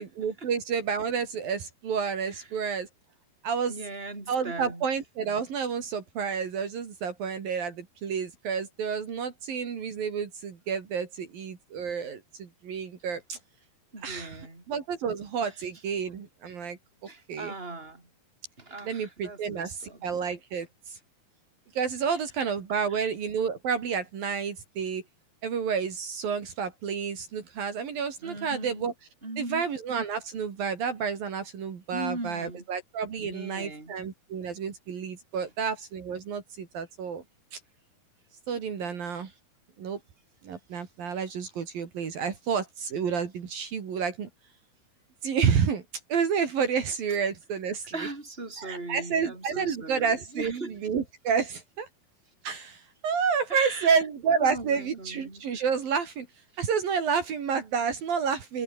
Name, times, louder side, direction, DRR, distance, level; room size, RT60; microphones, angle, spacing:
voice 1, 0.0-2.9 3.4-3.8 4.3-13.4 14.0-16.8 17.3-17.5 18.8-21.0 21.8-25.0 25.4-28.9 29.4-37.2 37.5-37.6 38.5-39.3 39.8-40.0 40.4-44.3 45.2-45.8 46.1-47.9 48.6-51.9 52.4-56.3 56.6-58.6, right 6 dB, 65° right, 4.7 m, -30 dB
voice 2, 3.7-4.9 13.9-14.6 15.4-15.5 17.1-18.1 18.6-20.0 22.1-22.2 22.9-23.1 28.2-28.9 29.2-29.7 31.9-32.6 33.2-34.0 38.8-39.2 47.9-50.8 53.5-54.0 54.4-55.4, right 2 dB, 15° right, 5.8 m, -39 dB
omnidirectional pair, 4.5 m